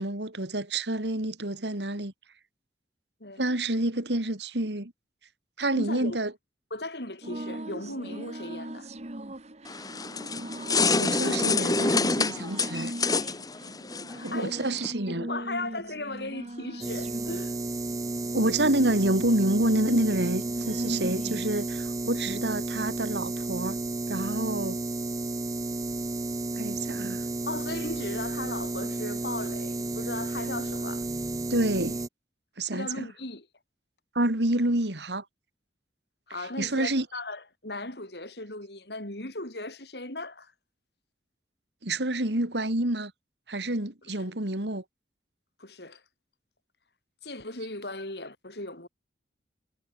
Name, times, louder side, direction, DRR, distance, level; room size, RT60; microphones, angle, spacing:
voice 1, 0.0-2.1 3.4-4.9 5.6-6.3 11.0-12.9 14.2-15.3 18.3-23.8 24.1-24.8 26.6-27.2 31.5-32.0 32.6-33.1 34.2-35.2 36.6-37.1 41.8-43.1 43.5-44.8, right 1 dB, 75° right, 3.4 m, -28 dB
voice 2, 5.8-6.2 6.7-8.9 14.1-14.6 15.1-17.5 27.5-31.0 32.7-33.5 36.3-40.5 44.1-44.3 45.6-46.0 47.2-48.9, left 2 dB, 65° left, 7.7 m, -37 dB
sound 1, 7.2-21.6, right 1 dB, 40° right, 1.7 m, -40 dB
sound 2, 9.7-14.9, left 4 dB, 20° left, 1.1 m, -27 dB
sound 3, 16.8-32.1, right 2 dB, 20° right, 0.5 m, -32 dB
head